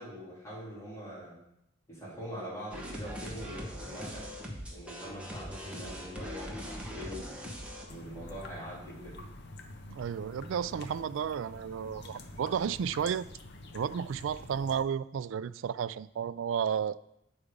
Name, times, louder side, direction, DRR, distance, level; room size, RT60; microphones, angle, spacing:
voice 1, 0.0-1.4 1.9-4.2 4.7-7.3 7.9-9.2, equal, 15° left, -8 dB, 3.6 m, -43 dB
sound 1, 2.7-7.9, equal, 5° right, 1.1 m, -41 dB
sound 2, 7.9-14.8, left 2 dB, 55° left, 0.8 m, -47 dB
voice 2, 9.9-13.3 13.7-17.0, right 7 dB, 70° right, 17 dB, 0.3 m, -32 dB
8.4 x 4.9 x 5.2 m, 0.80 s
head